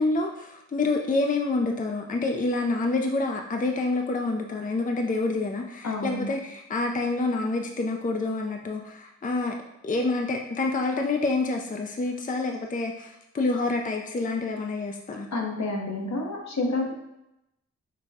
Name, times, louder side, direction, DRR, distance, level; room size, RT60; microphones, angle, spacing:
voice 1, 0.0-9.6 9.8-15.3, left 3 dB, 30° left, 3 dB, 0.4 m, -27 dB
voice 2, 5.8-6.3 15.3-16.9, left 2 dB, 70° left, 0 dB, 0.9 m, -29 dB
5.2 x 2.2 x 4.1 m, 0.87 s
wide cardioid pair, 60°, 29 cm